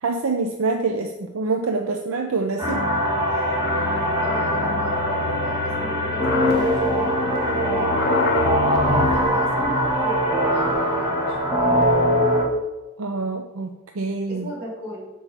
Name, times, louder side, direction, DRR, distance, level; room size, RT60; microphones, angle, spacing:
voice 1, 0.0-2.8 3.4-3.6 13.0-14.5, right 3 dB, 75° right, 4 dB, 0.5 m, -26 dB
sound 1, 2.6-9.1, left 5 dB, 50° left, 0.6 m, -29 dB
sound 2, 2.6-12.5, equal, 20° right, 1.3 m, -22 dB
voice 2, 4.1-8.1 8.8-11.8 14.3-15.1, equal, 50° right, -5 dB, 2.8 m, -36 dB
7.3 x 4.6 x 5.3 m, 1.1 s
head